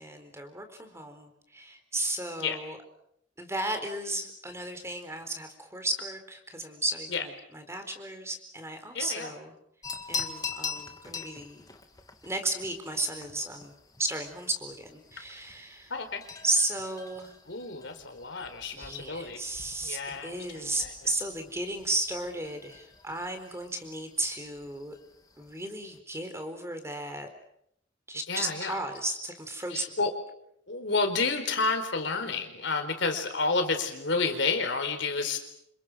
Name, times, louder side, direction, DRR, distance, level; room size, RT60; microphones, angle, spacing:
voice 1, 0.0-2.8 3.4-9.5 10.1-11.7 12.2-13.7 14.0-15.9 16.4-17.3 18.7-25.0 25.4-27.3 28.1-30.0, right 2 dB, 15° right, 6 dB, 4.2 m, -34 dB
voice 2, 8.9-9.3 15.9-16.2 17.5-19.4 19.8-20.9 28.3-28.7 29.7-30.1 30.7-35.4, left 4 dB, 65° left, 6 dB, 4.5 m, -30 dB
sound 1, 9.8-26.0, left 5 dB, 20° left, 2.3 m, -44 dB
29.5 x 27.5 x 6.3 m, 0.73 s
head